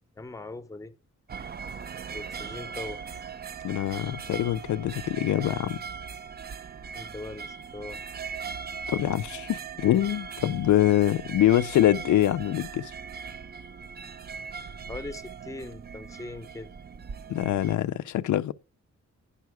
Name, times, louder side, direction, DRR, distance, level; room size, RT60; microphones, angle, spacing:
voice 1, 0.2-0.9 2.1-3.0 6.9-8.0 14.9-16.8, left 2 dB, 10° left, 0.6 m, -40 dB
sound 1, 1.3-17.8, right 6 dB, 35° right, 0.4 m, -39 dB
voice 2, 3.6-5.8 8.9-12.9 17.3-18.5, left 13 dB, 85° left, 0.5 m, -24 dB
9.5 x 5.6 x 4.7 m
cardioid pair, 105°, 29 cm